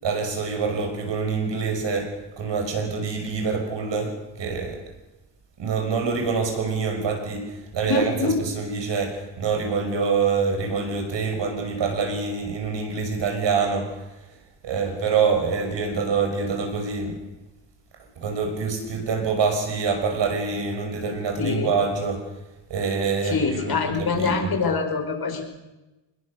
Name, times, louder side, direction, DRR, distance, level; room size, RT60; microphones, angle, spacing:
voice 1, 0.0-4.9 5.6-14.2 14.6-17.2 18.2-22.3 22.7-24.5, right 5 dB, 70° right, 6.0 m, -26 dB
voice 2, 7.8-8.4 21.4-21.7 23.2-25.4, left 4 dB, 55° left, 5.2 m, -25 dB
26.0 x 21.0 x 6.6 m
wide cardioid pair, 155°, 45 cm